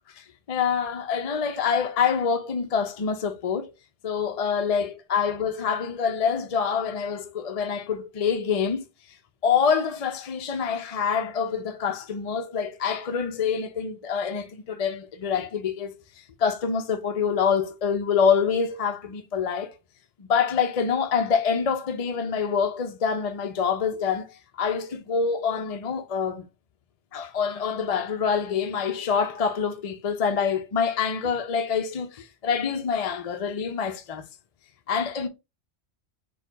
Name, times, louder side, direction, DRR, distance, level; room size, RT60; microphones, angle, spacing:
voice 1, 0.2-3.7 4.0-8.8 9.4-16.0 16.4-19.7 20.2-26.4 27.1-34.2 34.9-35.3, left 6 dB, 50° left, 0.4 m, -26 dB
4.7 x 2.3 x 4.5 m
omnidirectional pair, 1.3 m